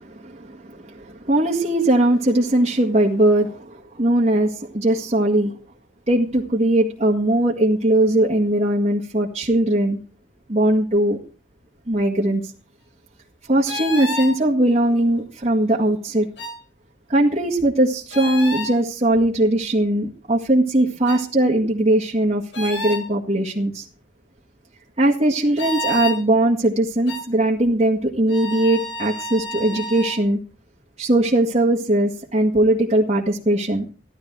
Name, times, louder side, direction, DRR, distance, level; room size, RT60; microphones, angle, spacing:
voice 1, 0.0-5.5 6.1-10.0 10.5-11.2 11.9-12.4 13.5-16.3 17.1-23.8 25.0-30.4 31.0-33.9, right 1 dB, 35° right, -3 dB, 1.9 m, -20 dB
sound 1, 13.7-14.3 16.4-16.6 18.1-18.7 21.1-21.2 22.5-23.0 25.6-26.2 27.1-27.2 28.3-30.2, left 1 dB, 70° left, 4.3 m, -29 dB
15.5 x 12.0 x 4.7 m, 0.37 s
head